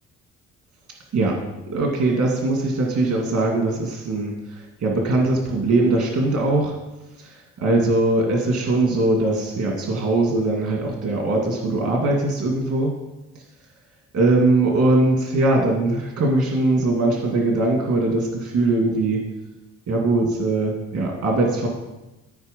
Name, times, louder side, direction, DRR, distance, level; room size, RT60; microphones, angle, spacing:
voice 1, 1.7-6.7 7.2-12.9 14.1-19.2 19.9-21.7, right 2 dB, 65° right, 0 dB, 2.1 m, -21 dB
13.0 x 4.7 x 5.2 m, 1.0 s
cardioid pair, 90°, 30 cm